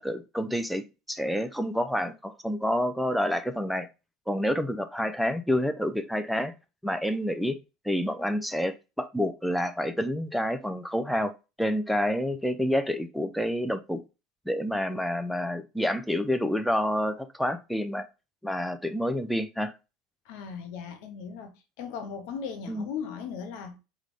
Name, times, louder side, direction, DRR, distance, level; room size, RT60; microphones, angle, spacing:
voice 1, 0.0-3.9 4.3-6.5 6.8-7.6 7.8-11.3 11.6-14.0 14.5-18.1 18.4-19.7 22.7-22.9, equal, ahead, 0.4 m, -28 dB
voice 2, 20.3-23.8, left 6 dB, 60° left, 0.8 m, -37 dB
3.6 x 2.3 x 3.2 m
figure-of-eight pair, 70°, 0 cm